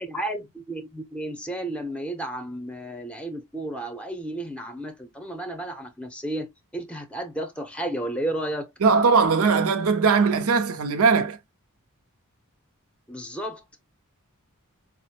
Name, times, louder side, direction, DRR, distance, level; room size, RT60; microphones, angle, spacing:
voice 1, 0.0-8.7 13.1-13.6, right 1 dB, 5° left, 0.7 m, -32 dB
voice 2, 8.8-11.4, right 5 dB, 70° right, 0.6 m, -20 dB
4.8 x 2.1 x 2.8 m
head